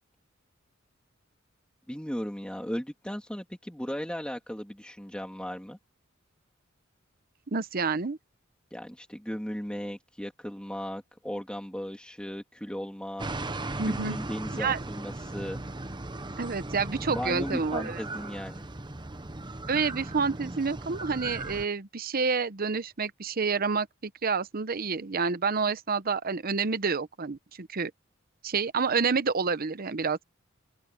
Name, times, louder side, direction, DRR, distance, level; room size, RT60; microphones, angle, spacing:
voice 1, 1.9-5.8 8.7-13.3 13.9-15.6 17.1-18.6, equal, 5° left, 2.4 m, -36 dB
voice 2, 7.5-8.2 13.8-14.2 14.5-14.8 16.4-18.0 19.7-27.9 28.4-30.2, right 5 dB, 50° right, 0.8 m, -28 dB
sound 1, 13.2-21.7, right 2 dB, 25° right, 1.0 m, -37 dB
head